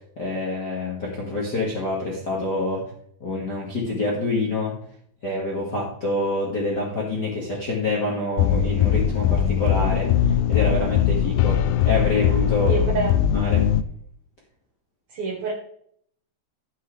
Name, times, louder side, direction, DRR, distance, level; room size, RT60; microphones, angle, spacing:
voice 1, 0.2-2.8 3.2-4.8 5.2-11.6 11.8-12.9 13.3-13.7, left 2 dB, 40° left, -4 dB, 1.5 m, -26 dB
sound 1, 8.4-13.8, left 10 dB, 90° left, 2.0 m, -20 dB
voice 2, 12.7-13.2 15.1-15.5, right 5 dB, 85° right, 0 dB, 1.2 m, -26 dB
12.0 x 7.8 x 3.3 m, 0.65 s
omnidirectional pair, 4.9 m